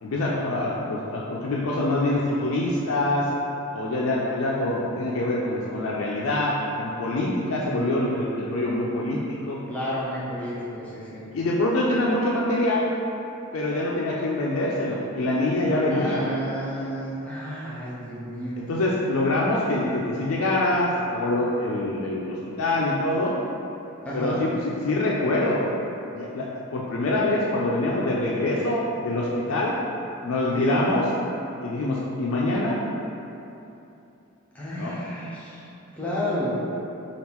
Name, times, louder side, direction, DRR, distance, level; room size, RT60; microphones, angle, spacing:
voice 1, 0.0-3.3 3.7-9.6 11.3-12.9 13.5-16.2 18.6-23.3 24.1-25.6 26.1-29.7 30.2-31.0 31.6-32.8 34.8-35.0, left 1 dB, 65° left, -4 dB, 0.4 m, -25 dB
voice 2, 7.6-7.9 9.7-11.3 15.9-18.7 24.0-24.4 30.5-30.8 34.5-35.6 35.9-36.6, equal, 5° left, -9 dB, 0.6 m, -31 dB
4.4 x 2.3 x 3.5 m, 2.8 s
head